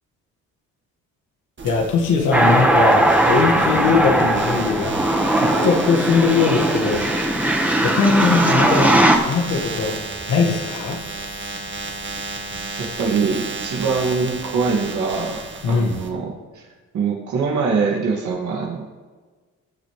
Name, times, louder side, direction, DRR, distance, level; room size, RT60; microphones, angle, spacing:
voice 1, 1.6-5.0 5.4-7.0 7.8-10.0 10.3-11.0 15.6-16.0, left 4 dB, 85° left, 1 dB, 2.0 m, -20 dB
sound 1, 1.6-16.1, right 4 dB, 40° right, 1.9 m, -33 dB
sound 2, 2.3-9.2, right 1 dB, 5° right, 1.5 m, -18 dB
voice 2, 12.8-15.4 15.7-16.6 16.9-18.8, right 4 dB, 70° right, -3 dB, 2.4 m, -23 dB
19.5 x 6.6 x 3.4 m, 1.4 s
cardioid pair, 90°, 30 cm